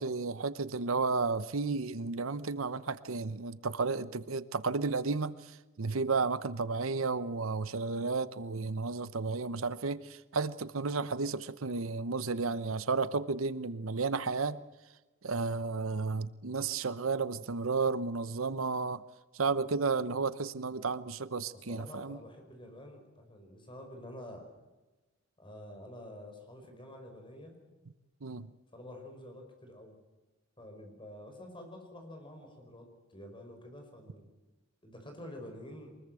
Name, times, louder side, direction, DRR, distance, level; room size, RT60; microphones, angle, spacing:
voice 1, 0.0-14.6 15.2-19.0 19.3-22.2 28.2-28.5, right 4 dB, 80° right, 15 dB, 0.9 m, -33 dB
voice 2, 21.5-24.5 25.4-27.6 28.7-30.0 30.6-34.3 34.8-36.0, left 1 dB, 25° left, 4 dB, 5.4 m, -48 dB
23.5 x 21.0 x 7.7 m, 1.1 s
head